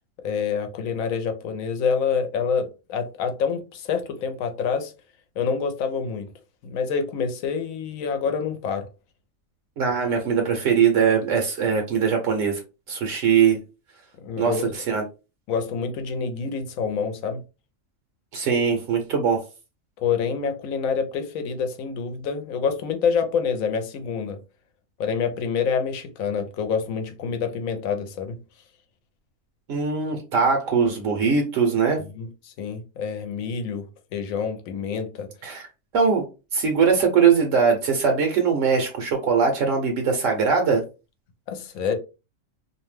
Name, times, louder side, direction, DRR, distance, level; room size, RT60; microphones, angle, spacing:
voice 1, 0.2-4.9 5.4-6.3 6.6-8.9 14.2-14.6 15.5-17.4 20.0-24.4 25.0-28.4 32.1-33.9 34.1-35.3 41.5-41.9, left 6 dB, 85° left, 1.0 m, -27 dB
voice 2, 9.8-12.6 12.9-13.6 14.4-14.5 14.9-15.0 18.3-19.4 29.7-32.0 35.4-35.7 35.9-36.2 36.5-40.8, right 6 dB, 75° right, 1.0 m, -21 dB
2.7 x 2.1 x 3.1 m
omnidirectional pair, 1.4 m